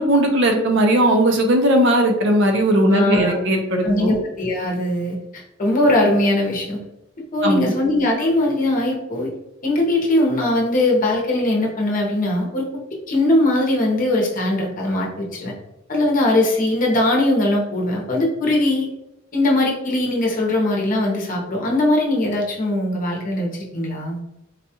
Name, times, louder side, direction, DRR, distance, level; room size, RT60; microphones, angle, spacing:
voice 1, 0.0-4.2 7.4-7.7, right 1 dB, 60° right, 3 dB, 0.6 m, -17 dB
voice 2, 2.8-3.4 3.8-6.8 7.3-9.3 9.6-12.7 13.1-15.5 15.9-18.9 19.3-24.2, left 1 dB, 40° left, -2 dB, 0.8 m, -20 dB
4.0 x 2.3 x 2.7 m, 0.87 s
head